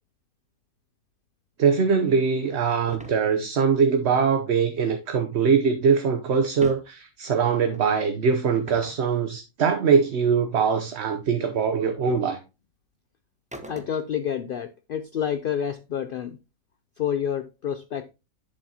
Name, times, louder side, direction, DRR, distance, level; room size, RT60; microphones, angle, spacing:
voice 1, 1.6-12.4, right 6 dB, 55° right, 1.0 m, -22 dB
sound 1, 2.9-3.2 6.4-6.9 7.7-7.9 8.7-9.0 11.3-11.4 12.1-12.3 13.5-14.2, right 1 dB, 5° right, 0.8 m, -41 dB
voice 2, 13.7-16.4 17.0-18.1, left 9 dB, 70° left, 0.5 m, -29 dB
8.6 x 7.3 x 2.8 m
omnidirectional pair, 1.5 m